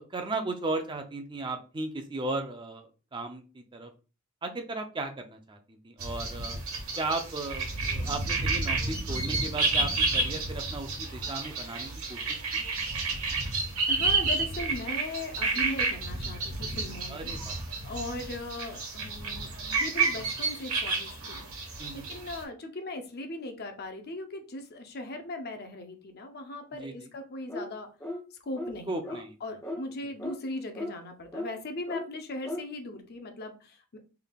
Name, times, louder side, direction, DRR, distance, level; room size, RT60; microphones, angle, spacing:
voice 1, 0.0-3.9 4.4-6.6 7.0-12.6 17.1-17.6 21.8-22.1 26.8-27.1 28.9-29.4, right 2 dB, 20° right, 5 dB, 0.5 m, -36 dB
sound 1, 6.0-22.4, right 3 dB, 75° right, 1.3 m, -30 dB
voice 2, 13.9-17.3 17.8-21.4 21.9-27.9 28.4-34.0, left 2 dB, 45° left, 5 dB, 0.6 m, -39 dB
sound 2, 27.5-27.7 28.0-28.2 28.5-28.7 29.0-29.2 29.6-29.8 30.2-30.4 30.7-30.9 31.3-31.5 31.9-32.1 32.4-32.6, left 1 dB, 15° left, 0.9 m, -35 dB
3.8 x 3.4 x 2.3 m, 0.34 s
head